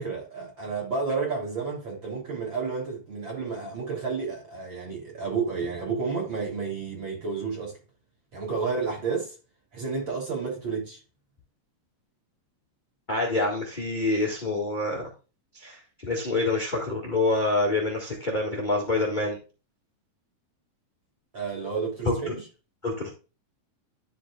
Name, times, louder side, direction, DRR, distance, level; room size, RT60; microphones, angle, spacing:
voice 1, 0.0-7.8 8.3-9.4 9.7-11.0 21.3-22.4, right 5 dB, 35° right, 3.7 m, -31 dB
voice 2, 13.1-15.1 15.5-19.4 22.0-22.3 22.8-23.1, left 2 dB, 25° left, 1.1 m, -26 dB
11.5 x 5.2 x 2.3 m
omnidirectional pair, 3.9 m